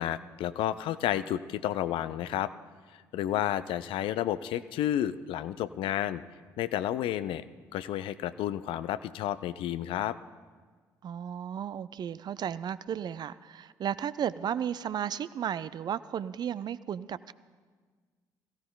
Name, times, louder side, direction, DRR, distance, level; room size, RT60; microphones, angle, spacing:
voice 1, 0.0-2.5 3.1-6.2 6.6-7.5 7.7-10.2, left 12 dB, 55° left, 14 dB, 0.4 m, -31 dB
voice 2, 11.0-17.3, right 9 dB, 45° right, 16 dB, 0.4 m, -34 dB
22.0 x 15.5 x 2.3 m, 1.5 s
figure-of-eight pair, 45°, 10 cm